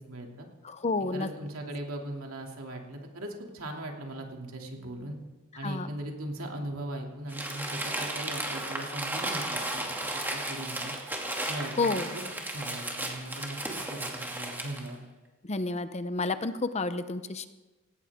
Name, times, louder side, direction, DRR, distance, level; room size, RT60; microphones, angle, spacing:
voice 1, 0.1-0.5 1.1-5.2 5.5-10.0 10.3-10.9 11.5-15.0, right 1 dB, 80° right, 1 dB, 2.7 m, -39 dB
voice 2, 0.6-1.3 5.6-5.9 11.8-12.1 15.4-17.5, left 3 dB, 30° left, 11 dB, 0.7 m, -30 dB
Crumpling crinkling, 7.3-14.9, right 1 dB, 10° right, 2.4 m, -34 dB
18.0 x 17.5 x 3.7 m, 1.2 s
head